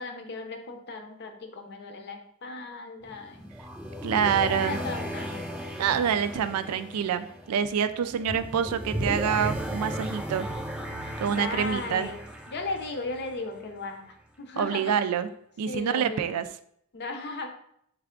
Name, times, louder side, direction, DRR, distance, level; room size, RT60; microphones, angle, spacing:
voice 1, 0.0-3.5 4.2-5.5 11.3-12.2 12.5-14.9 15.7-16.4 16.9-17.5, left 3 dB, 50° left, 5 dB, 0.6 m, -36 dB
sound 1, 3.0-13.8, equal, 5° right, 0.5 m, -36 dB
voice 2, 4.0-4.8 5.8-10.5 11.2-12.1 14.6-15.3 15.6-16.5, right 7 dB, 90° right, 11 dB, 0.3 m, -26 dB
sound 2, 9.0-10.4 10.7-12.2, left 2 dB, 90° left, 1.1 m, -47 dB
3.4 x 3.3 x 3.7 m, 0.70 s
head